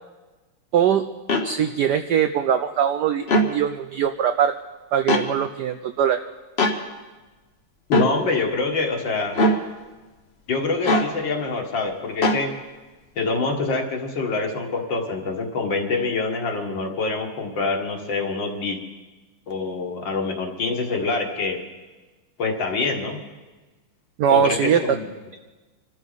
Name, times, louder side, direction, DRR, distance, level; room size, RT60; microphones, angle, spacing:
voice 1, 0.7-1.1 1.4-4.5 4.9-6.2 24.2-24.8, right 8 dB, 75° right, 9 dB, 0.9 m, -21 dB
sound 1, 1.3-1.5 3.2-3.5 5.1-5.3 6.6-6.8 7.9-8.1 9.3-9.6 10.8-11.1 12.2-12.4, left 1 dB, 40° left, 1.1 m, -19 dB
voice 2, 7.9-9.4 10.5-12.5 13.2-18.8 19.5-21.6 22.4-23.2 24.3-25.0, left 3 dB, 60° left, 2 dB, 2.3 m, -25 dB
26.0 x 13.0 x 4.0 m, 1.2 s
omnidirectional pair, 2.4 m